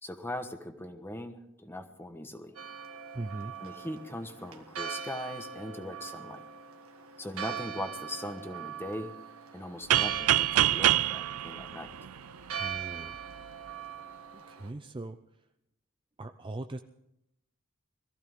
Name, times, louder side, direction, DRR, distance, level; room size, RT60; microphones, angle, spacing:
voice 1, 0.0-2.5 3.6-6.4 7.2-9.1 9.5-11.9, left 1 dB, 10° left, 6 dB, 1.2 m, -40 dB
Church bell, 2.6-14.7, right 7 dB, 70° right, 1.6 m, -41 dB
voice 2, 3.1-3.5 12.6-13.2 14.3-15.2 16.2-16.8, right 2 dB, 25° right, 8 dB, 0.5 m, -39 dB
sound 1, 9.9-12.7, right 13 dB, 85° right, 0.5 m, -26 dB
21.5 x 15.0 x 3.7 m, 0.82 s
head